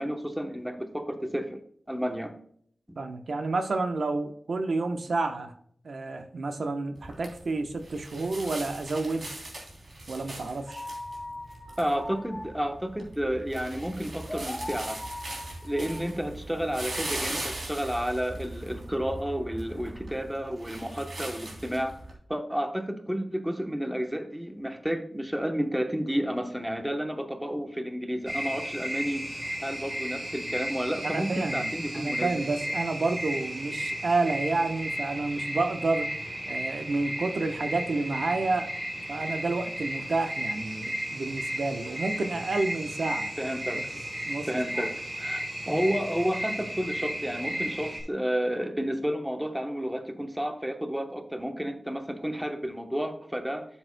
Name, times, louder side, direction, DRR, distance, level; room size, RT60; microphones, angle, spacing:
voice 1, 0.0-1.6 1.9-2.3 2.9-3.0 11.8-15.0 15.6-21.9 22.3-32.3 43.4-43.9 44.5-45.4 45.7-53.6, equal, 5° right, 5 dB, 0.9 m, -31 dB
voice 2, 3.0-5.5 5.8-9.3 10.1-10.9 31.0-36.1 36.5-38.7 39.1-43.3 44.3-44.5 44.7-44.9, right 3 dB, 80° right, 6 dB, 0.9 m, -30 dB
sound 1, 7.0-22.1, right 1 dB, 55° right, 3.1 m, -40 dB
sound 2, 10.7-17.3, left 1 dB, 10° left, 1.5 m, -41 dB
sound 3, 28.3-48.0, equal, 30° right, 2.7 m, -34 dB
12.0 x 7.2 x 2.2 m, 0.62 s
wide cardioid pair, 105°, 0 cm